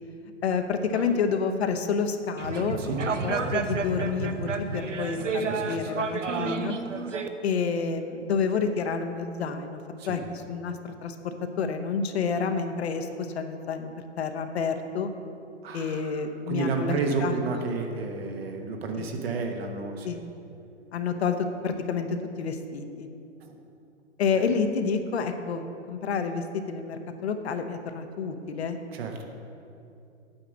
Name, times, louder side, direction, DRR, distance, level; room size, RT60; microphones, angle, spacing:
voice 1, 0.4-3.0 3.2-6.8 7.4-9.8 10.1-13.9 14.2-15.1 15.7-17.4 19.0-19.1 20.0-20.2 20.9-23.1 24.2-28.8, left 5 dB, 60° left, 7 dB, 0.9 m, -29 dB
sound 1, 2.4-7.3, right 4 dB, 85° right, 0.7 m, -30 dB
voice 2, 5.5-5.9 6.3-6.4 10.0-10.2 15.6-16.2 16.5-20.1 23.4-23.5 28.9-29.2, right 4 dB, 55° right, 3 dB, 1.3 m, -31 dB
8.9 x 5.0 x 7.3 m, 2.6 s
figure-of-eight pair, 120°, 36 cm